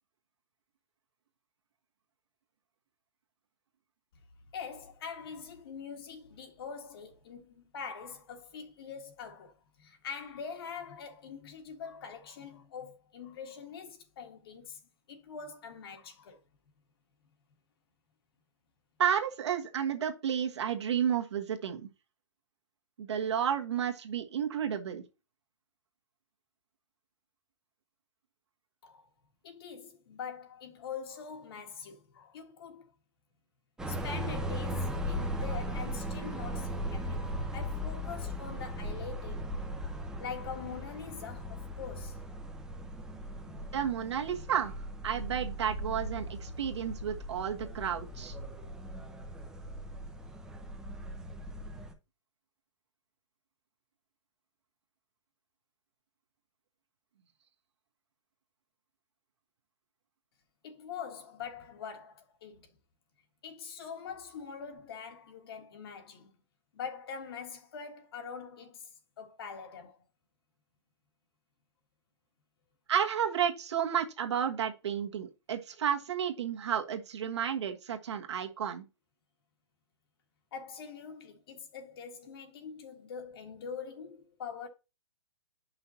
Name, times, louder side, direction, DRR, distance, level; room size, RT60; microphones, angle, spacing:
voice 1, 4.5-14.8 15.1-16.4 28.8-29.1 29.4-32.9 33.9-39.5 40.2-42.2 43.3-43.9 60.6-62.7 63.4-66.3 66.7-68.9 69.2-70.0 80.5-84.7, left 6 dB, 55° left, 1.6 m, -44 dB
voice 2, 19.0-21.9 23.0-25.0 43.7-44.7 45.0-48.4 72.9-78.8, right 8 dB, 70° right, 1.4 m, -32 dB
sound 1, 33.8-51.9, equal, 5° right, 0.7 m, -38 dB
9.7 x 5.6 x 2.8 m
hypercardioid pair, 150°, 15 cm